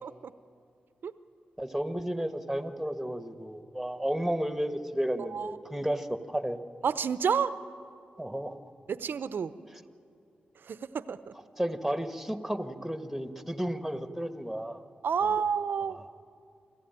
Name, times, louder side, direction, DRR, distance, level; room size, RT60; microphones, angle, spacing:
voice 1, 0.0-0.3 1.0-1.1 5.3-5.5 6.8-7.5 8.9-9.5 10.6-11.3 15.0-16.0, right 6 dB, 70° right, 14 dB, 0.8 m, -30 dB
voice 2, 1.6-6.6 8.2-8.6 11.6-14.8 15.2-15.4 15.9-16.0, right 1 dB, ahead, 8 dB, 1.6 m, -33 dB
25.5 x 14.5 x 9.1 m, 2.5 s
supercardioid pair, 40°, 4 cm